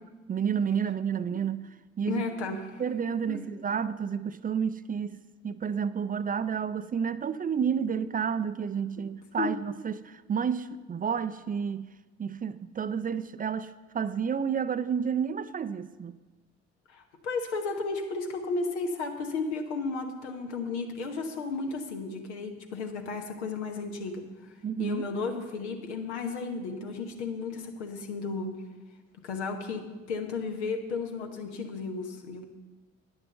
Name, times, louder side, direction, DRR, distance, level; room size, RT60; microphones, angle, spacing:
voice 1, 0.3-1.7 2.0-2.2 2.8-5.2 5.4-11.9 12.2-16.2 24.6-25.1, right 7 dB, 25° right, 0.4 m, -30 dB
voice 2, 2.1-2.8 3.2-3.4 9.4-9.5 16.9-28.5 29.2-32.4, left 4 dB, 85° left, 1.0 m, -34 dB
9.9 x 7.1 x 6.5 m
hypercardioid pair, 50°, 34 cm